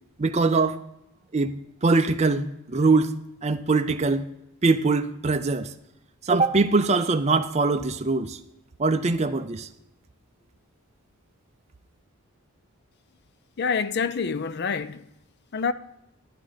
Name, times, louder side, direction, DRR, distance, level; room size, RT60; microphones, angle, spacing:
voice 1, 0.2-0.8 1.3-1.5 1.8-3.1 3.4-4.3 4.6-5.7 6.2-8.4 8.8-9.7, right 3 dB, 30° right, 0.5 m, -22 dB
voice 2, 13.6-15.0 15.5-15.7, left 5 dB, 50° left, 0.5 m, -26 dB
11.5 x 9.6 x 4.0 m
head